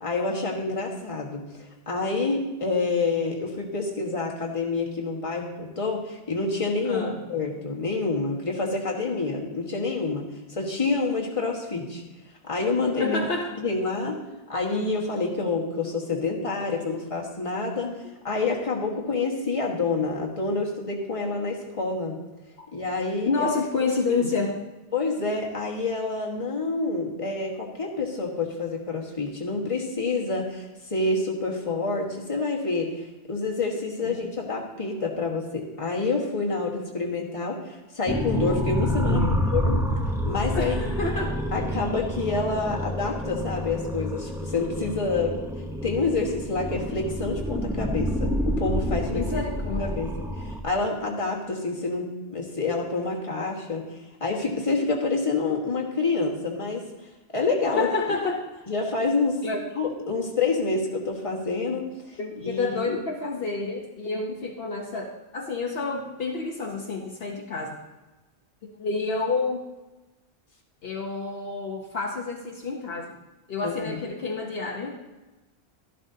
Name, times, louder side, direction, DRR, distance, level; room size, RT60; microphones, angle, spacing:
voice 1, 0.0-12.0 12.4-13.2 13.6-14.2 14.5-17.9 18.2-22.2 22.7-23.5 24.9-33.0 33.3-39.2 39.5-39.8 40.2-40.8 41.5-45.4 45.8-49.4 49.8-56.8 57.3-57.9 58.7-59.4 59.7-63.0 73.6-74.0, left 3 dB, 30° left, -2 dB, 1.5 m, -28 dB
voice 2, 6.8-7.3 13.0-13.6 15.8-16.2 17.8-18.0 19.0-19.1 22.6-22.7 23.3-24.6 34.0-34.1 39.1-39.4 40.5-41.4 49.1-50.0 57.7-58.6 59.4-59.6 62.2-67.8 68.6-69.6 70.8-73.2 73.5-75.0, left 3 dB, 65° left, 0 dB, 1.1 m, -29 dB
sound 1, 38.1-50.6, equal, 5° right, 0.8 m, -28 dB
13.0 x 11.5 x 2.8 m, 1.1 s
omnidirectional pair, 1.1 m